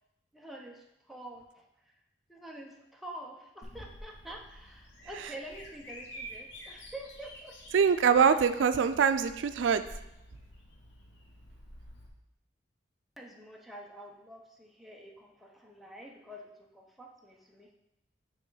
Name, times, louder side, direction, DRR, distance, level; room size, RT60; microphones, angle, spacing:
voice 1, 0.3-1.7 2.3-7.5 13.2-17.7, right 1 dB, ahead, -1 dB, 0.8 m, -47 dB
Bird vocalization bird call bird song, 3.6-12.1, equal, 80° left, 1.3 m, -49 dB
voice 2, 7.7-9.8, right 6 dB, 85° right, 11 dB, 0.4 m, -24 dB
8.8 x 3.5 x 3.9 m, 0.85 s
head